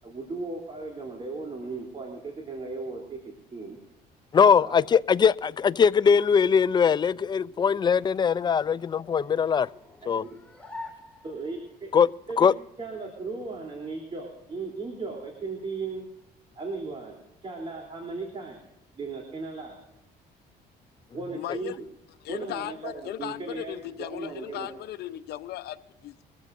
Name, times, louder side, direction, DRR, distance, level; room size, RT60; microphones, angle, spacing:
voice 1, 0.0-3.2 3.5-3.8 4.6-4.8 10.0-10.4 10.7-11.9 12.3-12.5 12.8-16.1 16.5-18.6 19.0-19.8 21.1-21.7 22.3-24.7, right 3 dB, 35° right, 3.4 m, -37 dB
voice 2, 4.3-9.7 10.1-10.2 11.9-12.1 12.4-12.5, left 6 dB, 25° left, 0.4 m, -21 dB
sound 1, 7.3-11.8, left 2 dB, 5° left, 2.1 m, -47 dB
voice 3, 21.3-21.7 22.2-26.3, left 13 dB, 70° left, 0.8 m, -37 dB
23.0 x 14.5 x 2.6 m
cardioid pair, 110°, 17 cm